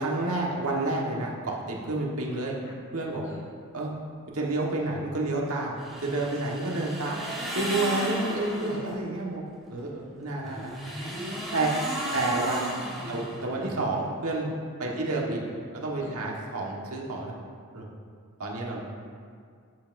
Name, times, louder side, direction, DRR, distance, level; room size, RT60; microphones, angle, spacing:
voice 1, 0.0-2.5 2.9-3.2 3.7-3.9 4.3-5.7 6.0-7.2 7.5-9.4 9.7-10.7 11.5-11.7 12.1-14.5 14.8-15.4 15.7-17.3 17.7-17.9 18.4-18.8, right 2 dB, 85° right, -2 dB, 1.5 m, -29 dB
sound 1, 5.8-8.9 10.4-13.7, right 1 dB, ahead, 1.8 m, -34 dB
voice 2, 10.8-12.3 13.0-13.2 14.8-15.0 16.0-16.2, left 1 dB, 65° left, -4 dB, 1.9 m, -46 dB
12.0 x 7.9 x 2.6 m, 2.1 s
head